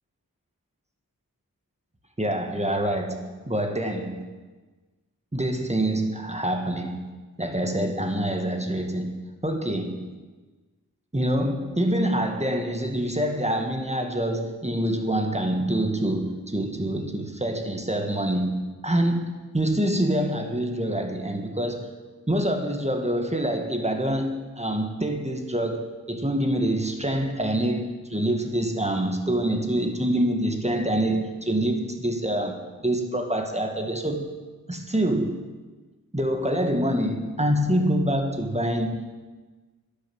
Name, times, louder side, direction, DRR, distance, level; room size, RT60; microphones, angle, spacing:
voice 1, 2.2-4.3 5.3-7.1 7.4-10.1 11.1-21.9 22.3-34.3 34.7-35.4 36.1-39.1, right 1 dB, 20° right, 4 dB, 1.7 m, -26 dB
11.5 x 10.5 x 7.9 m, 1.3 s
wide cardioid pair, 60°, 36 cm